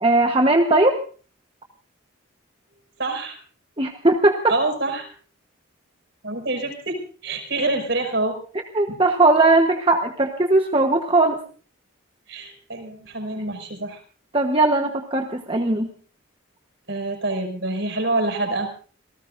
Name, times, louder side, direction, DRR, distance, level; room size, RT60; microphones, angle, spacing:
voice 1, 0.0-0.9 3.8-4.5 8.7-11.4 14.3-15.9, right 2 dB, 25° right, 3 dB, 1.1 m, -18 dB
voice 2, 3.0-3.4 4.5-5.1 6.2-8.4 12.3-14.0 16.9-18.7, right 2 dB, 60° right, 3 dB, 5.8 m, -26 dB
27.5 x 18.0 x 2.6 m, 0.41 s
head